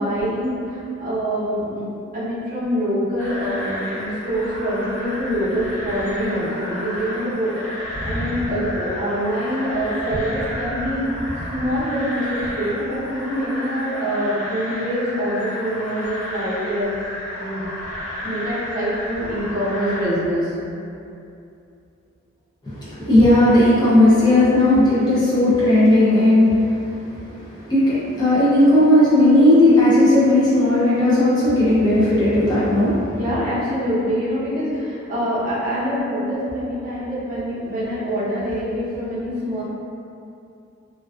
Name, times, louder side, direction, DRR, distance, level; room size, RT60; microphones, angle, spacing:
voice 1, 0.0-1.9 2.1-11.1 11.5-16.9 17.3-17.6 18.2-20.5 33.2-39.6, equal, 40° right, -11 dB, 0.7 m, -25 dB
sound 1, 3.2-20.0, equal, 65° left, 1.2 m, -31 dB
voice 2, 22.7-33.2, left 1 dB, 20° left, -11 dB, 0.4 m, -16 dB
2.4 x 2.2 x 2.3 m, 2.6 s
head